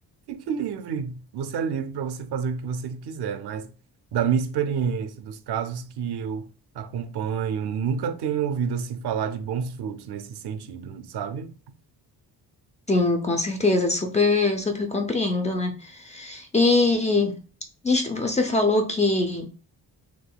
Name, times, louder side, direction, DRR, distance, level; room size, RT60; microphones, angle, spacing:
voice 1, 0.3-3.7 4.1-6.5 6.7-11.5, right 7 dB, 80° right, 0.5 m, -29 dB
voice 2, 12.9-17.4 17.8-19.5, left 3 dB, 20° left, 0.4 m, -23 dB
3.5 x 3.1 x 2.2 m
wide cardioid pair, 155°, 39 cm